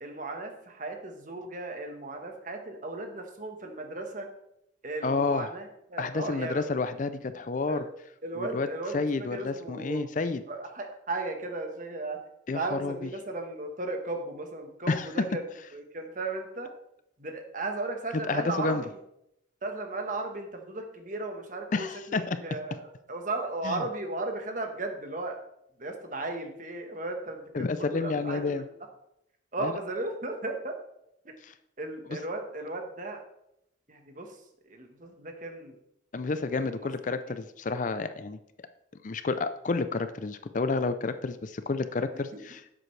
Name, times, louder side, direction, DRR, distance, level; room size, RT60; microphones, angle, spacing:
voice 1, 0.0-4.3 4.8-6.7 7.7-7.8 8.2-10.1 10.5-12.2 12.5-15.4 15.7-16.7 17.2-18.8 19.6-25.4 25.8-28.6 29.5-30.8 31.8-33.2 33.9-35.8 36.5-36.9 42.3-42.4, right 2 dB, 45° right, 4 dB, 1.3 m, -36 dB
voice 2, 5.0-5.5 6.0-7.8 8.4-8.7 8.9-10.4 12.5-13.1 14.9-15.1 18.3-18.8 21.7-22.4 23.6-23.8 27.5-28.6 29.6-29.7 36.1-38.4 39.0-42.6, left 3 dB, 45° left, 11 dB, 0.4 m, -30 dB
11.0 x 7.7 x 3.2 m, 0.80 s
head